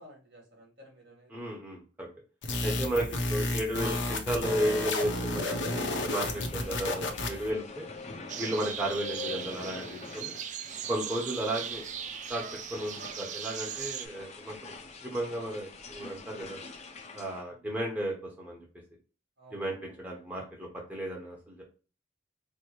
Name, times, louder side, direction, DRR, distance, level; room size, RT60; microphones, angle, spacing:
voice 1, 0.0-1.5 3.2-3.3 17.4-17.7 19.4-20.0 20.9-21.1, equal, 65° right, 0 dB, 1.9 m, -55 dB
voice 2, 1.3-2.1 2.6-7.9 8.4-10.4 10.9-11.8 12.3-12.4 12.7-14.6 15.0-16.6 17.1-18.6 19.5-21.6, right 1 dB, 10° right, -2 dB, 0.9 m, -34 dB
sound 1, 2.4-7.5, left 2 dB, 75° left, 0.7 m, -32 dB
sound 2, 5.9-17.4, left 3 dB, 40° left, 0.6 m, -45 dB
sound 3, 8.3-14.1, right 8 dB, 40° right, 0.3 m, -39 dB
4.4 x 2.1 x 3.0 m, 0.35 s
head